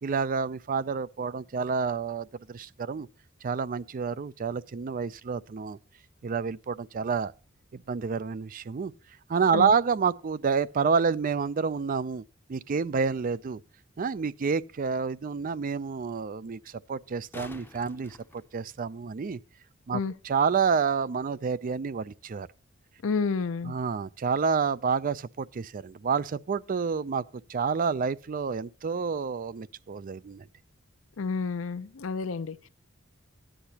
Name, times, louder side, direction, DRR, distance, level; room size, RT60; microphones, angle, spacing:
voice 1, 0.0-3.1 3.4-5.8 6.2-7.3 7.7-8.9 9.3-12.2 12.5-13.6 14.0-19.4 19.9-22.5 23.6-27.2 27.5-30.5, right 5 dB, 45° right, 0.4 m, -29 dB
sound 1, 17.0-19.1 22.0-22.1, left 2 dB, 10° left, 0.7 m, -48 dB
voice 2, 23.0-23.7 31.2-32.7, left 4 dB, 80° left, 0.5 m, -30 dB
14.0 x 10.0 x 2.8 m
head